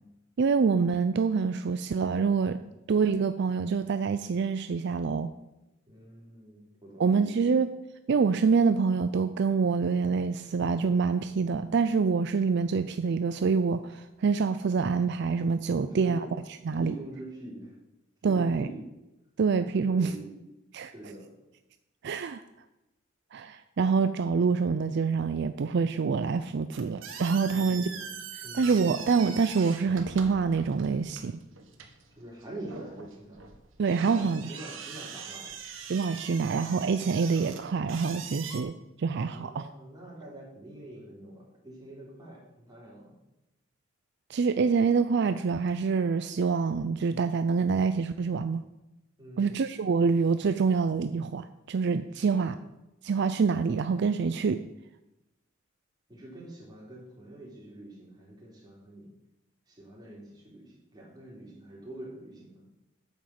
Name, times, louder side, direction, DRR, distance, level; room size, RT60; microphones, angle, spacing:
voice 1, 0.4-2.6 2.9-5.3 7.0-7.7 8.1-16.3 16.6-16.9 18.2-18.7 19.4-20.1 20.7-20.9 22.0-22.4 23.3-27.9 28.3-31.3 33.8-34.6 35.9-39.7 44.3-48.6 49.4-52.6 53.0-54.6, right 5 dB, 60° right, 10 dB, 0.4 m, -26 dB
voice 2, 5.9-7.6 15.8-16.3 16.8-17.8 18.2-18.8 19.8-20.3 20.8-21.3 27.5-28.2 28.4-28.8 32.2-33.5 34.0-35.5 39.2-43.2 49.2-49.6 52.1-52.5 56.1-59.1 59.7-62.6, right 1 dB, 20° right, -4 dB, 3.6 m, -45 dB
sound 1, 26.7-38.6, right 6 dB, 80° right, 1.4 m, -43 dB
8.8 x 7.4 x 5.9 m, 0.96 s
head